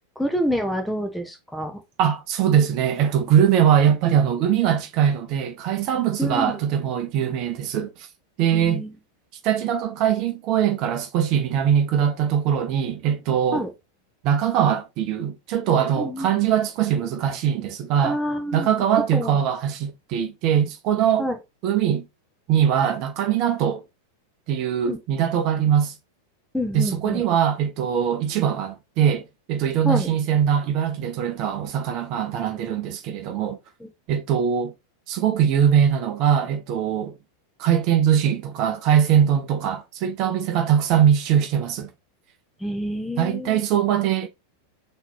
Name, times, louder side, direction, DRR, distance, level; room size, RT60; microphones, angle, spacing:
voice 1, 0.2-1.8 6.2-6.5 8.5-8.9 13.5-13.7 16.0-16.4 18.0-18.7 19.1-19.4 21.2-21.4 24.9-25.0 26.5-27.2 29.8-30.1 33.8-33.9 42.6-43.6, equal, 5° left, 1.1 m, -27 dB
voice 2, 2.0-8.1 8.4-8.8 9.4-13.7 14.2-18.2 18.5-21.3 21.6-22.0 22.5-23.8 24.5-25.9 26.7-33.6 34.1-34.7 35.1-37.2 37.6-41.9 43.2-44.3, right 9 dB, 40° right, 0.9 m, -21 dB
4.1 x 3.1 x 4.2 m
figure-of-eight pair, 90°, 0 cm